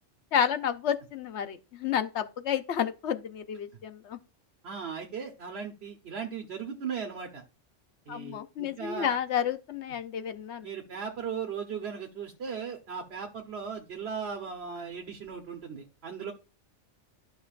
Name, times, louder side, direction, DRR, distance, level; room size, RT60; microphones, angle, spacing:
voice 1, 0.3-4.2 8.1-10.7, left 8 dB, 65° left, 1.0 m, -30 dB
voice 2, 4.6-7.4 8.1-9.2 10.6-16.3, right 6 dB, 60° right, 1.3 m, -37 dB
12.0 x 5.5 x 2.5 m
omnidirectional pair, 1.3 m